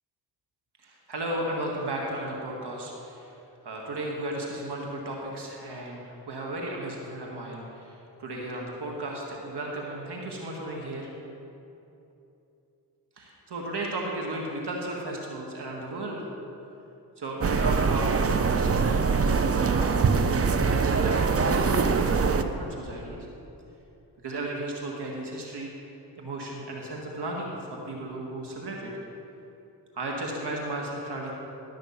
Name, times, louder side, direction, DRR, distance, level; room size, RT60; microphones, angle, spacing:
voice 1, 0.8-3.4 3.6-11.1 13.2-16.3 17.2-23.3 24.2-25.7 26.2-28.9 29.9-31.3, right 1 dB, 60° right, -1 dB, 1.7 m, -34 dB
sound 1, 17.4-22.4, right 5 dB, 30° right, 0.7 m, -23 dB
12.0 x 5.9 x 7.1 m, 2.9 s
supercardioid pair, 50°, 44 cm